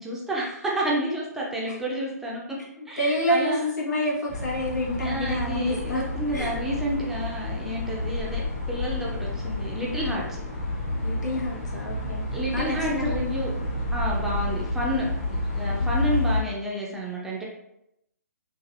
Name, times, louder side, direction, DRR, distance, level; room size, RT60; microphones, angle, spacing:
voice 1, 0.0-2.4 2.9-3.6 5.0-10.4 12.3-13.5 13.9-15.1 15.6-17.4, right 1 dB, 5° right, -5 dB, 0.4 m, -30 dB
voice 2, 2.8-6.0 6.3-6.5 11.0-12.3 12.5-13.3, left 1 dB, 85° left, -4 dB, 1.2 m, -28 dB
sound 1, 4.3-16.4, left 2 dB, 40° left, 1.4 m, -30 dB
3.2 x 2.5 x 2.4 m, 0.80 s
hypercardioid pair, 140°, 9 cm